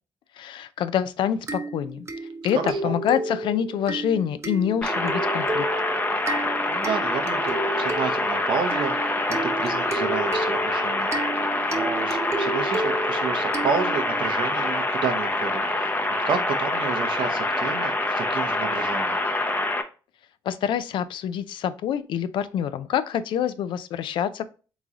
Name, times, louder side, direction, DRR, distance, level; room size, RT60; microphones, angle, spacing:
voice 1, 0.4-2.1 2.4-5.7 20.5-24.5, left 9 dB, 75° left, 13 dB, 0.4 m, -26 dB
sound 1, 1.5-14.2, right 2 dB, 35° right, 0.7 m, -32 dB
voice 2, 2.6-3.0 6.7-15.9 16.3-19.2, right 6 dB, 75° right, 7 dB, 0.7 m, -31 dB
sound 2, 4.8-19.8, left 2 dB, 20° left, 0.7 m, -26 dB
3.9 x 3.0 x 3.6 m, 0.35 s
cardioid pair, 80°, 8 cm